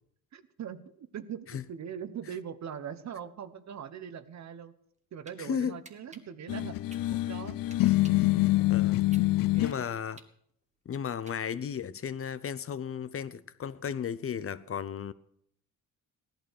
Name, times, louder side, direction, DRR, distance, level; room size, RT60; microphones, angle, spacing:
voice 1, 0.3-4.7 5.1-6.8 7.1-7.6 9.5-9.9, right 8 dB, 55° right, 1.2 m, -41 dB
sound 1, 4.8-5.4 5.8-8.3 8.7-11.8, right 3 dB, 20° right, 1.6 m, -54 dB
voice 2, 5.4-5.8 8.7-9.0 9.5-10.2 10.9-15.1, left 8 dB, 45° left, 0.7 m, -34 dB
sound 2, 6.5-9.8, left 17 dB, 90° left, 0.5 m, -25 dB
16.5 x 11.5 x 6.4 m
cardioid pair, 130°, 32 cm